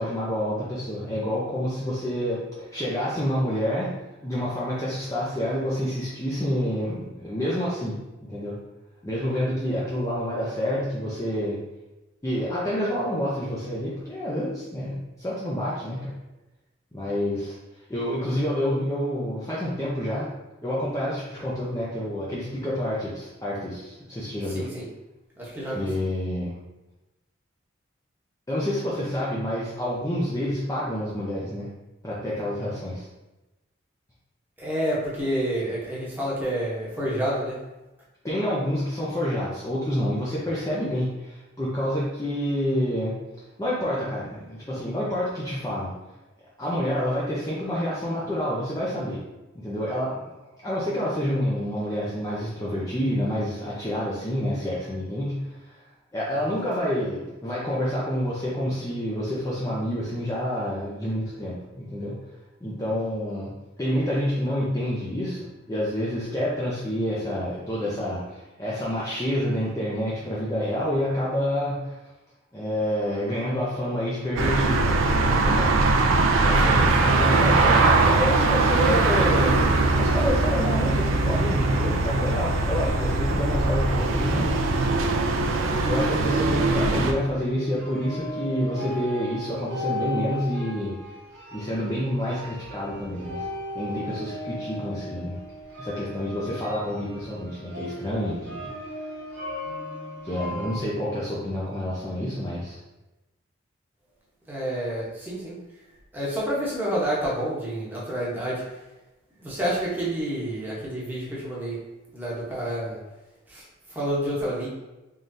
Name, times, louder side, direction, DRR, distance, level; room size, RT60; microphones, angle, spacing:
voice 1, 0.0-3.9 4.2-8.0 8.2-8.6 9.0-11.6 12.2-16.1 16.9-17.6 17.9-20.3 20.6-24.7 25.7-26.5 28.5-31.7 32.0-33.1 38.2-43.1 43.6-45.9 46.6-49.2 49.5-50.2 50.6-55.8 56.1-62.1 62.6-63.5 63.8-72.0 72.5-75.0 75.2-75.7 76.4-79.6 80.0-84.7 85.9-91.0 91.5-93.4 93.7-95.4 95.8-98.7 100.2-102.8, equal, 15° left, -7 dB, 0.5 m, -28 dB
voice 2, 24.5-24.9 25.4-25.9 34.6-37.6 56.5-56.6 76.6-76.9 104.5-105.6 106.1-108.6 109.4-111.8 112.1-113.0 113.5-113.6 113.9-114.7, right 1 dB, 10° right, -7 dB, 0.9 m, -29 dB
sound 1, 74.4-87.1, right 3 dB, 85° right, 0.4 m, -21 dB
sound 2, 86.5-100.8, left 1 dB, 60° right, 0.9 m, -37 dB
3.7 x 3.2 x 2.6 m, 1.0 s
head